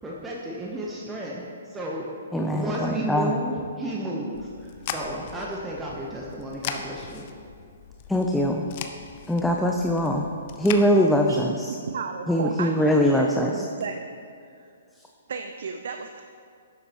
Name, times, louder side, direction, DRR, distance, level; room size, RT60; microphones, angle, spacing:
voice 1, 0.0-1.4 1.7-4.5 4.9-7.3, right 1 dB, 10° right, -4 dB, 0.9 m, -32 dB
voice 2, 2.3-3.4 8.1-8.7 9.3-10.3 10.6-11.8 12.3-13.6 14.9-15.1, equal, 5° left, 1 dB, 0.5 m, -22 dB
sound 1, 4.3-10.8, left 7 dB, 45° left, 0.7 m, -39 dB
voice 3, 11.4-14.1 14.6-14.7 15.3-16.2, right 5 dB, 65° right, 5 dB, 0.5 m, -34 dB
11.0 x 7.7 x 3.0 m, 2.4 s
figure-of-eight pair, 125°, 0 cm